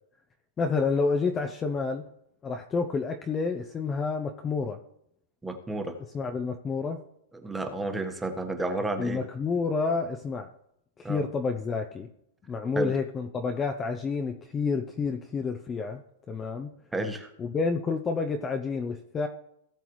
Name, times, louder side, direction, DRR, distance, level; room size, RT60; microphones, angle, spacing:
voice 1, 0.6-2.1 2.4-4.8 6.1-7.0 9.0-10.5 11.0-12.1 12.5-16.0 16.3-16.7 17.4-19.3, left 4 dB, 20° left, 5 dB, 0.7 m, -29 dB
voice 2, 5.4-6.0 7.4-9.2 11.0-11.2 12.7-13.0 16.9-17.3, right 2 dB, 10° right, 5 dB, 1.3 m, -31 dB
18.0 x 6.9 x 3.1 m, 0.78 s
hypercardioid pair, 140°, 0 cm